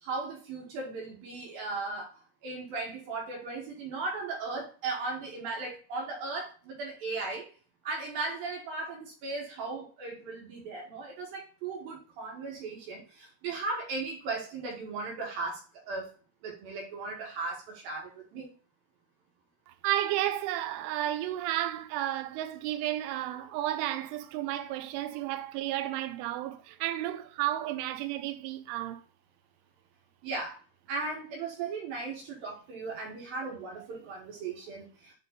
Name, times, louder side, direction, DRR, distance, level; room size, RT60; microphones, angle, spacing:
voice 1, 0.0-2.1 2.4-7.5 7.8-15.6 15.9-16.1 16.4-18.5 30.2-30.6 30.9-35.1, right 3 dB, 55° right, 3.0 m, -37 dB
voice 2, 19.7-29.0, right 13 dB, 85° right, 3.0 m, -32 dB
9.0 x 3.6 x 4.0 m
omnidirectional pair, 5.8 m